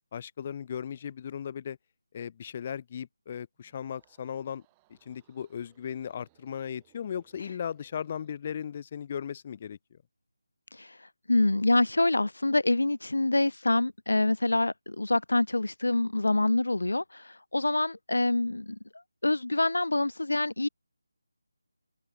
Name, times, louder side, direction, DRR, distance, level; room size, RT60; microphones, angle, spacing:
voice 1, 0.1-1.8 2.1-4.6 5.0-10.0, left 8 dB, 30° left, 1.2 m, -37 dB
sound 1, 3.5-8.5, right 24 dB, 15° right, 7.8 m, -68 dB
voice 2, 10.7-18.8 19.2-20.7, left 2 dB, 75° left, 0.5 m, -26 dB
open air
figure-of-eight pair, 160°, 0 cm